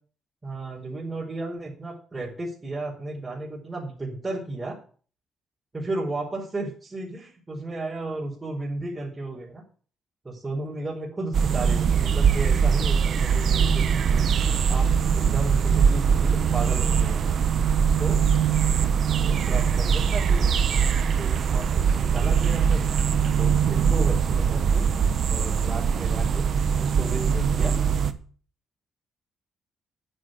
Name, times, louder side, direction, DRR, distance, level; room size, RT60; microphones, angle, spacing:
voice 1, 0.4-4.8 5.7-9.6 10.2-14.3 14.7-17.2 17.8-18.2 19.2-20.5 21.0-22.9 23.4-24.9 25.3-26.5 26.8-27.8, right 2 dB, 20° right, -5 dB, 4.6 m, -34 dB
sound 1, 11.3-28.1, right 7 dB, 60° right, 1.1 m, -22 dB
10.0 x 8.1 x 8.2 m, 0.42 s
cardioid pair, 90°, 0 cm